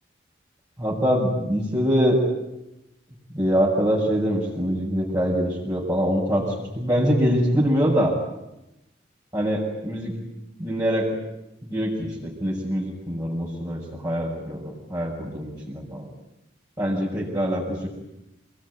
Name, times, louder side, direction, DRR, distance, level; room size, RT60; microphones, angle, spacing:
voice 1, 0.8-2.2 3.3-8.1 9.3-10.1 10.6-11.1 11.6-16.0 16.8-17.9, equal, 20° right, -5 dB, 6.4 m, -24 dB
28.0 x 21.5 x 9.8 m, 0.93 s
head